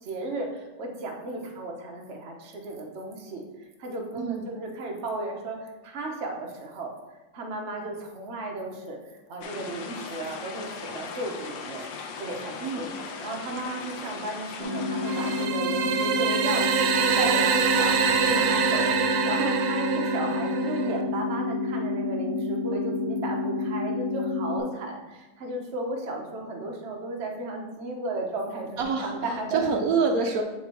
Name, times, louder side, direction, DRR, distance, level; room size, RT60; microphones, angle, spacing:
voice 1, 0.0-3.4 3.8-6.9 7.3-11.8 12.2-12.9 13.2-18.0 18.3-29.7, right 2 dB, 45° right, 0 dB, 1.1 m, -34 dB
sound 1, 9.4-15.5, left 5 dB, 70° left, 1.4 m, -38 dB
sound 2, 14.6-24.6, left 3 dB, 25° right, 1.4 m, -29 dB
sound 3, 15.1-21.0, right 7 dB, 85° right, 1.4 m, -25 dB
voice 2, 28.8-30.4, right 5 dB, 70° right, 4 dB, 0.9 m, -26 dB
8.4 x 3.6 x 4.4 m, 1.1 s
omnidirectional pair, 2.2 m